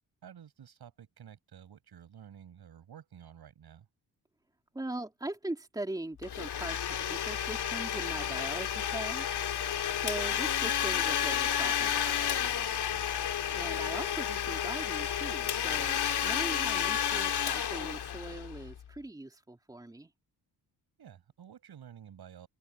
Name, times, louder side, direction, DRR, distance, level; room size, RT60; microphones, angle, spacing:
voice 1, 0.2-3.9 12.7-13.1 21.0-22.5, right 9 dB, 60° right, 7.8 m, -52 dB
voice 2, 4.7-9.3 9.7-12.7 13.5-20.1, right 1 dB, 10° right, 3.1 m, -41 dB
Domestic sounds home sounds, 6.2-18.8, left 9 dB, 65° left, 2.7 m, -31 dB
wide cardioid pair, 155°, 43 cm